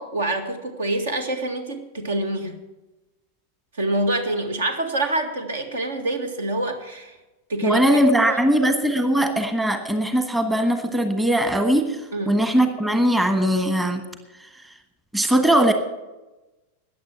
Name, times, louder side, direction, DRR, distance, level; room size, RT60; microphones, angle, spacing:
voice 1, 0.0-2.5 3.7-7.2 7.5-7.8 8.2-8.4 12.1-12.4, right 1 dB, 65° right, 7 dB, 1.8 m, -26 dB
voice 2, 7.6-14.0 14.4-14.7 15.1-15.7, right 1 dB, 5° right, 7 dB, 1.3 m, -20 dB
14.5 x 9.5 x 6.0 m, 1.1 s
figure-of-eight pair, 90°, 0 cm